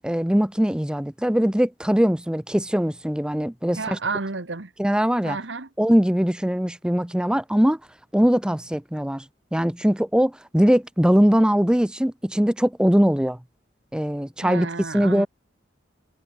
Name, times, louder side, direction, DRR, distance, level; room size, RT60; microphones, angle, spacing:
voice 1, 0.0-4.0 4.8-5.4 5.8-7.8 8.1-9.3 9.5-13.4 13.9-14.7 14.9-15.3, equal, 5° right, 0.6 m, -21 dB
voice 2, 3.8-4.7 5.2-5.7 14.4-15.3, right 4 dB, 75° right, 1.4 m, -31 dB
head